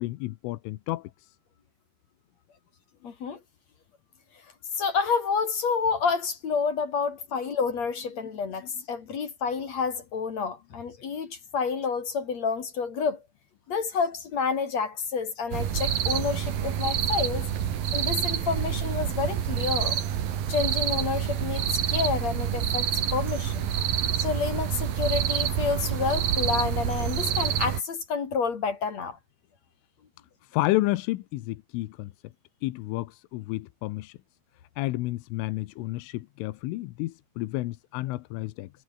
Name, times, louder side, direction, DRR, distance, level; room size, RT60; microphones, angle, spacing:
voice 1, 0.0-1.4 8.2-8.3 30.4-32.1 32.6-34.2 34.8-38.7, left 18 dB, 90° left, 3.5 m, -31 dB
voice 2, 3.0-3.4 4.7-13.2 13.7-17.5 17.9-20.0 20.5-23.7 24.2-29.2, left 5 dB, 45° left, 2.6 m, -29 dB
sound 1, 15.5-27.8, right 9 dB, 55° right, 3.4 m, -27 dB
omnidirectional pair, 5.6 m